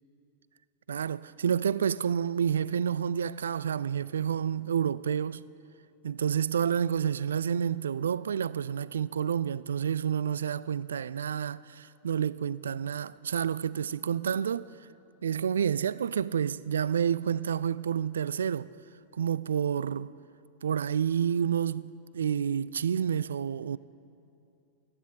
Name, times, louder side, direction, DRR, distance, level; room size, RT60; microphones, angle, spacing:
voice 1, 0.9-5.4 6.0-14.7 15.2-18.7 19.1-20.1 20.6-23.8, right 8 dB, 65° right, 0.3 m, -29 dB
15.5 x 9.8 x 9.0 m
figure-of-eight pair, 90°, 0 cm